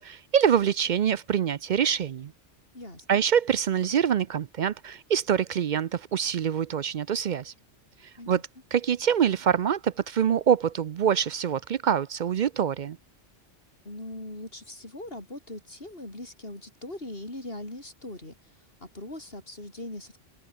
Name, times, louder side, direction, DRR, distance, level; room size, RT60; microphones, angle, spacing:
voice 1, 0.0-2.3 3.1-7.5 8.3-8.4 8.7-13.0, right 8 dB, 55° right, 0.5 m, -25 dB
voice 2, 2.7-3.2 8.2-8.4 13.9-20.2, left 1 dB, 55° left, 5.8 m, -41 dB
open air
omnidirectional pair, 1.2 m